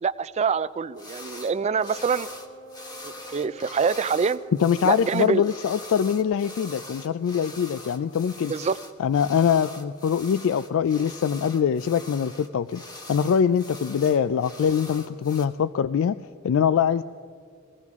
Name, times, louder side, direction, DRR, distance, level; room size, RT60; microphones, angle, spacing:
voice 1, 0.0-2.3 3.0-4.4 4.8-5.4 8.5-8.8, right 5 dB, 30° right, 15 dB, 0.3 m, -25 dB
sound 1, 1.0-1.5 1.8-15.4, left 2 dB, 20° left, 1.2 m, -42 dB
Wind instrument woodwind instrument, 1.2-7.9, equal, 60° right, 0.8 m, -48 dB
voice 2, 4.6-8.5 9.0-12.8 13.1-16.2 16.4-17.0, left 7 dB, 65° left, 15 dB, 0.3 m, -23 dB
21.0 x 16.5 x 3.6 m, 2.3 s
head